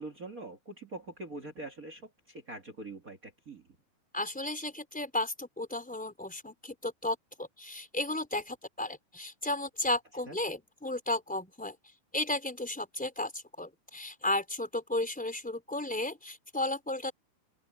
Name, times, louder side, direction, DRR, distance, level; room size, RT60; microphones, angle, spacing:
voice 1, 0.0-3.6 10.3-10.4, right 2 dB, 50° right, 1.0 m, -44 dB
voice 2, 4.1-11.8 12.1-17.1, left 1 dB, ahead, 3.9 m, -34 dB
open air
omnidirectional pair, 5.1 m